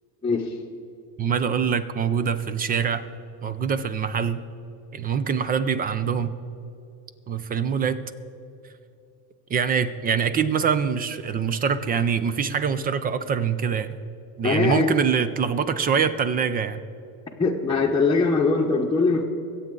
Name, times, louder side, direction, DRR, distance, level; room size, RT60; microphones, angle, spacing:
voice 1, 0.2-0.6 14.4-14.9 17.4-19.2, left 3 dB, 10° left, -3 dB, 0.9 m, -21 dB
voice 2, 1.2-3.0 3.4-4.4 4.9-6.3 7.3-8.0 9.5-13.9 14.4-16.8, right 6 dB, 20° right, 13 dB, 0.3 m, -24 dB
24.0 x 8.3 x 3.8 m, 2.7 s
supercardioid pair, 120°, 49 cm